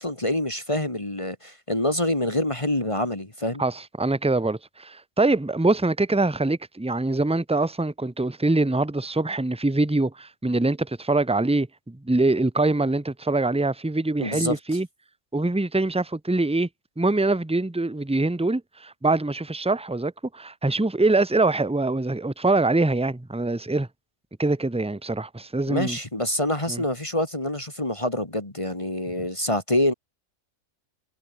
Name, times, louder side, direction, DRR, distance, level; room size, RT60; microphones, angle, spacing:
voice 1, 0.0-3.6 14.2-14.6 25.7-29.9, left 1 dB, 25° left, 2.4 m, -26 dB
voice 2, 3.6-14.9 15.3-16.7 17.0-23.9 24.4-26.0 26.7-26.8, right 2 dB, 5° right, 0.8 m, -24 dB
omnidirectional pair, 1.2 m